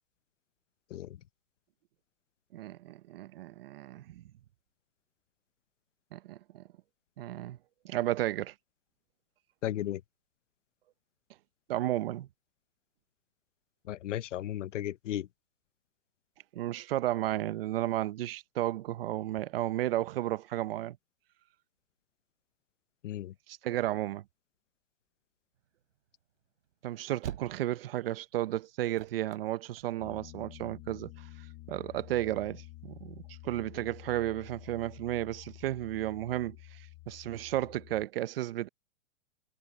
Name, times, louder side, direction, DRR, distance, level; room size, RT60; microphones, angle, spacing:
voice 1, 2.5-4.2 6.1-6.6 7.2-7.6 7.8-8.5 11.7-12.3 16.5-21.0 23.5-24.2 26.8-31.1 31.7-38.7, right 14 dB, 50° right, 1.0 m, -33 dB
voice 2, 9.6-10.0 13.9-15.3 23.0-23.3, left 12 dB, 70° left, 0.8 m, -35 dB
sound 1, 25.6-30.7, right 10 dB, 70° right, 4.7 m, -45 dB
Piano, 30.0-38.1, left 20 dB, 25° left, 1.5 m, -50 dB
hypercardioid pair, 155°, 38 cm